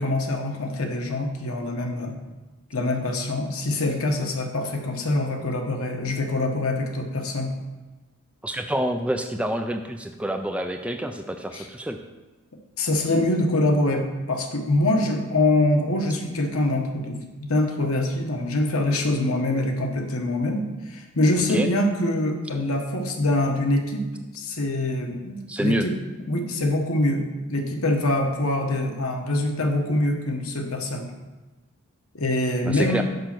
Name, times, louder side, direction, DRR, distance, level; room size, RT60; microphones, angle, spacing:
voice 1, 0.0-2.2 2.7-7.5 11.5-11.7 12.8-24.0 24.3-26.0 26.3-27.2 27.5-31.1 32.1-33.0, left 1 dB, 80° left, 3 dB, 1.1 m, -24 dB
voice 2, 8.4-12.0 21.5-21.7 25.5-25.9 32.6-33.0, right 1 dB, 5° right, 6 dB, 0.3 m, -27 dB
6.7 x 5.0 x 6.0 m, 1.2 s
head